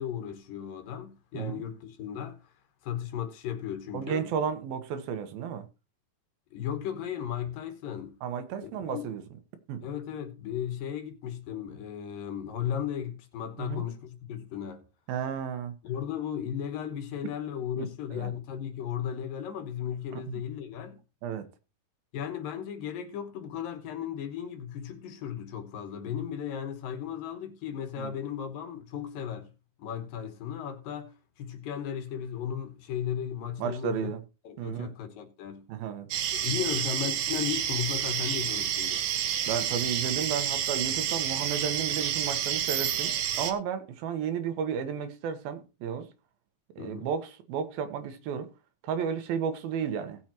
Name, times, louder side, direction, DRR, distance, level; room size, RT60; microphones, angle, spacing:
voice 1, 0.0-2.5 2.8-4.3 6.5-8.2 8.6-9.1 9.8-14.8 15.8-21.0 22.1-29.5 29.8-34.1 34.4-35.6 36.4-39.0 46.8-47.1, left 9 dB, 75° left, 2.9 m, -35 dB
voice 2, 3.9-5.6 8.2-9.2 9.7-9.8 13.6-13.8 15.1-15.7 17.8-18.3 20.1-20.4 21.2-21.5 28.0-28.1 33.6-34.2 34.6-34.9 35.7-36.1 39.5-46.1 46.8-48.5 48.8-50.2, right 7 dB, 90° right, 3.0 m, -33 dB
sound 1, 36.1-43.5, right 10 dB, 70° right, 2.4 m, -29 dB
18.0 x 7.3 x 3.0 m
omnidirectional pair, 4.1 m